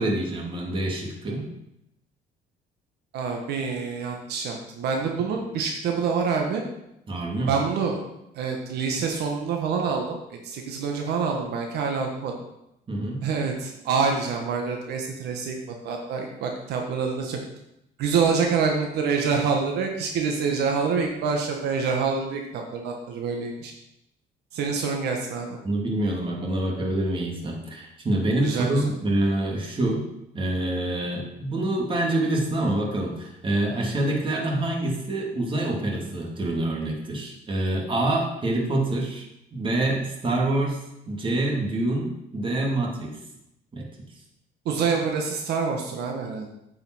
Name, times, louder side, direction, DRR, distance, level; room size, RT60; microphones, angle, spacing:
voice 1, 0.0-1.5 7.1-7.6 12.9-13.2 25.6-30.1 30.3-39.2 39.5-40.8 41.1-43.2 43.7-43.9, right 1 dB, 30° right, -1 dB, 2.5 m, -26 dB
voice 2, 3.1-6.6 7.5-8.0 8.3-12.3 13.2-17.4 18.0-23.7 24.5-25.6 28.4-28.8 44.6-46.5, right 5 dB, 80° right, 2 dB, 1.5 m, -26 dB
9.1 x 5.6 x 6.2 m, 0.84 s
cardioid pair, 110°, 17 cm